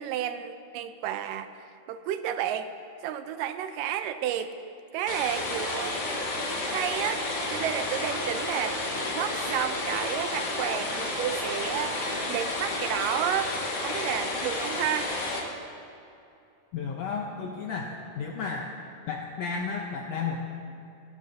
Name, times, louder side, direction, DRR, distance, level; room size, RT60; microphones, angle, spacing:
voice 1, 0.0-2.7 3.0-4.6 4.9-6.0 6.6-8.8 9.1-15.2, right 10 dB, 80° right, 10 dB, 2.1 m, -31 dB
sound 1, 5.1-15.4, left 2 dB, 50° left, 2.4 m, -31 dB
voice 2, 16.7-18.7 19.1-20.4, left 5 dB, 85° left, 0 dB, 1.4 m, -33 dB
30.0 x 12.5 x 2.7 m, 2.6 s
omnidirectional pair, 4.1 m